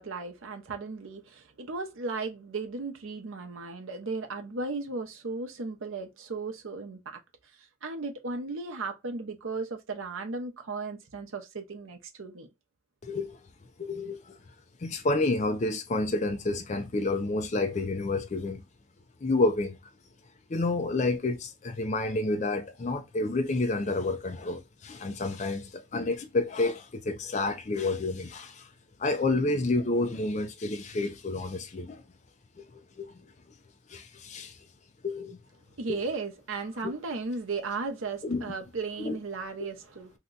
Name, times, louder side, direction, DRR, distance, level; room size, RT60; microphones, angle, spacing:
voice 1, 0.0-7.2 7.8-12.5 35.8-40.1, right 3 dB, 80° right, 0.7 m, -35 dB
voice 2, 13.0-13.4 13.8-14.4 14.8-18.6 19.2-19.8 20.5-28.7 29.0-32.0 32.6-33.2 33.9-34.6 35.0-35.4 35.9-36.0 36.8-36.9 38.2-38.4 39.0-39.2, left 2 dB, 35° left, 0.4 m, -29 dB
2.8 x 2.2 x 3.7 m
head